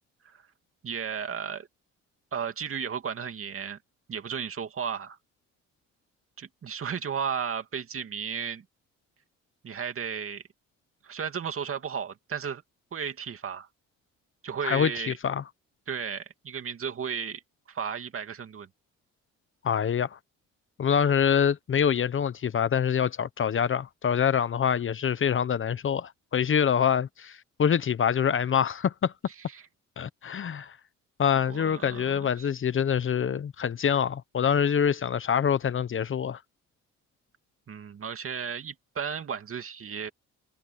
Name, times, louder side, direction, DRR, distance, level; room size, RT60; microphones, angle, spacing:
voice 1, 0.8-1.7 2.3-3.8 4.1-5.2 6.4-8.6 9.6-10.4 11.0-12.6 12.9-13.7 14.4-15.2 15.9-17.4 17.7-18.7 29.5-29.6 31.5-32.5 37.7-40.1, right 7 dB, 45° right, 2.6 m, -34 dB
voice 2, 14.6-15.4 19.6-20.2 20.8-29.1 30.0-30.8 31.2-36.4, left 8 dB, 40° left, 0.8 m, -25 dB
cardioid pair, 90°, 30 cm